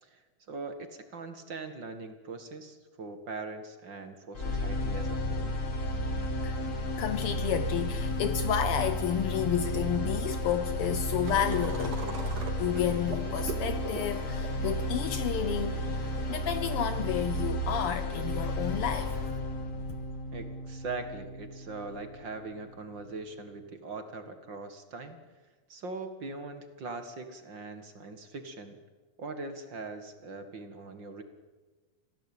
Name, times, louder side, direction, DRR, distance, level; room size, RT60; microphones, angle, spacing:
voice 1, 0.0-5.6 20.3-25.2 25.7-28.8 29.2-31.2, right 3 dB, 40° right, 8 dB, 2.2 m, -41 dB
sound 1, 4.3-22.4, left 1 dB, 30° left, 2.2 m, -33 dB
voice 2, 7.0-12.0 12.6-15.8 16.3-19.1 19.9-20.0, left 9 dB, 75° left, 11 dB, 1.3 m, -31 dB
sound 2, 11.2-16.3, right 3 dB, 75° right, 4.5 m, -42 dB
27.0 x 17.0 x 9.0 m, 1.3 s
omnidirectional pair, 3.6 m